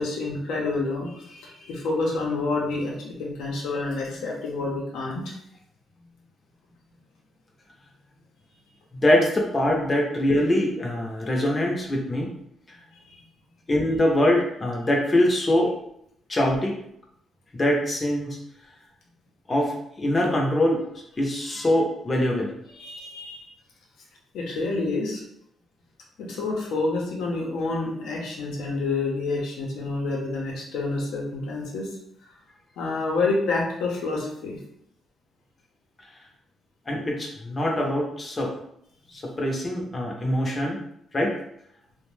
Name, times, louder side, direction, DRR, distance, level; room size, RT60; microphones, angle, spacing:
voice 1, 0.0-5.4 9.7-9.8 13.1-13.2 22.7-23.5 24.3-25.2 26.2-31.9 32.8-34.6, left 3 dB, 85° left, -2 dB, 0.7 m, -28 dB
voice 2, 8.9-12.3 13.7-15.8 16.3-16.7 17.5-18.4 19.5-20.9 21.2-22.5 36.9-38.5 39.1-40.8 41.1-41.4, left 1 dB, 30° left, 0 dB, 0.7 m, -23 dB
2.5 x 2.1 x 3.2 m, 0.72 s
cardioid pair, 85°, 0 cm